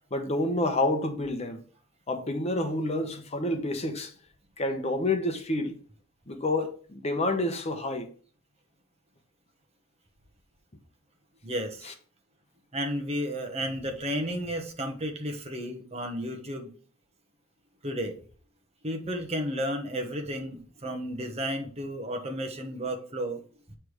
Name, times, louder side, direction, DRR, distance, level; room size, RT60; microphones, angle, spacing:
voice 1, 0.1-1.6 2.1-4.1 4.6-5.8 6.3-8.1 11.8-11.9, left 2 dB, 35° left, 0.9 m, -28 dB
voice 2, 11.4-11.9 12.7-16.7 17.8-18.2 18.8-23.4, equal, 30° right, 1.0 m, -32 dB
8.2 x 3.3 x 4.8 m
head